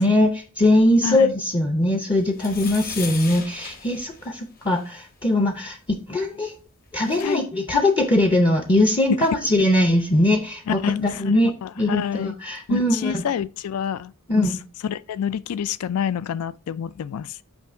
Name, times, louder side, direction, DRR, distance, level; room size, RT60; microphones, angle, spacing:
voice 1, 0.0-5.8 6.1-6.5 6.9-13.2 14.3-14.5, left 1 dB, 25° left, 0.5 m, -21 dB
voice 2, 1.0-1.3 7.2-7.5 10.7-12.4 12.7-14.5 14.8-17.4, left 8 dB, 85° left, 0.3 m, -28 dB
sound 1, 2.3-4.9 6.6-6.7 6.9-7.2, left 5 dB, 45° left, 1.0 m, -37 dB
8.0 x 2.8 x 4.3 m
head